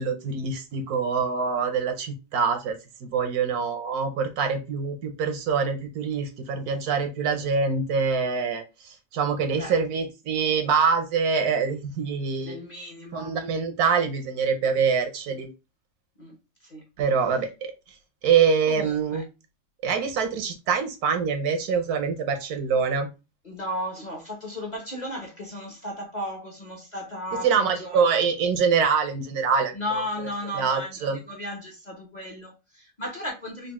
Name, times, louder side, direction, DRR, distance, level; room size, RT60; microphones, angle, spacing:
voice 1, 0.0-8.6 9.1-12.6 13.1-15.5 17.0-17.7 18.2-19.3 19.8-23.1 27.4-29.8 30.2-30.3 30.5-31.2, right 5 dB, 70° right, 6 dB, 1.1 m, -25 dB
voice 2, 12.4-13.3 16.2-16.3 16.6-16.8 18.7-19.2 23.4-28.0 29.7-33.7, left 1 dB, 35° left, 0 dB, 0.8 m, -35 dB
4.0 x 2.4 x 3.5 m, 0.27 s
omnidirectional pair, 1.7 m